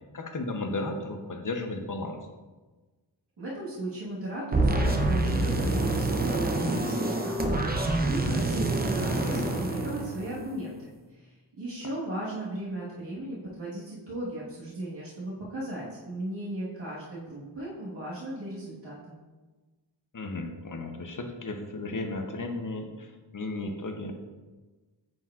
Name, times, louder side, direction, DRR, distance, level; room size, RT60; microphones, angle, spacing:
voice 1, 0.1-2.2 9.0-9.5 20.1-24.1, left 2 dB, 45° left, 5 dB, 0.8 m, -34 dB
voice 2, 3.4-19.2, right 1 dB, 70° right, -8 dB, 1.6 m, -37 dB
sound 1, 4.5-10.7, right 2 dB, 20° right, 0.6 m, -27 dB
9.4 x 4.5 x 2.4 m, 1.3 s
wide cardioid pair, 95°, 44 cm